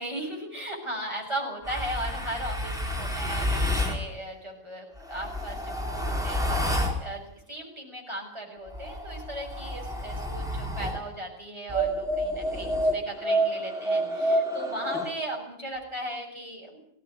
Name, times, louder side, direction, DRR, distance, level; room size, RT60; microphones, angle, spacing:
voice 1, 0.0-16.8, right 1 dB, 20° right, 0 dB, 7.2 m, -37 dB
sound 1, 1.6-4.0 5.0-7.0 8.7-11.0 11.7-15.1, equal, ahead, 4.4 m, -29 dB
20.5 x 17.5 x 9.7 m, 0.69 s
omnidirectional pair, 1.4 m